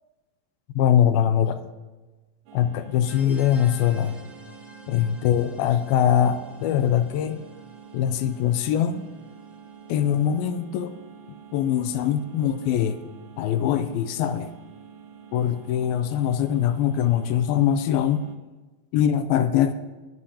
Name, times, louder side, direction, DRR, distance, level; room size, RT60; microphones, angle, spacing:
voice 1, 0.8-1.6 2.5-4.2 4.9-7.4 7.9-9.0 9.9-10.9 11.5-13.0 13.4-14.5 15.3-18.2 18.9-19.7, left 9 dB, 80° left, 10 dB, 2.4 m, -22 dB
sound 1, 2.5-18.4, right 7 dB, 65° right, 2.0 m, -47 dB
sound 2, 3.0-10.4, equal, ahead, 1.3 m, -50 dB
20.5 x 10.5 x 2.9 m, 1.2 s
omnidirectional pair, 4.3 m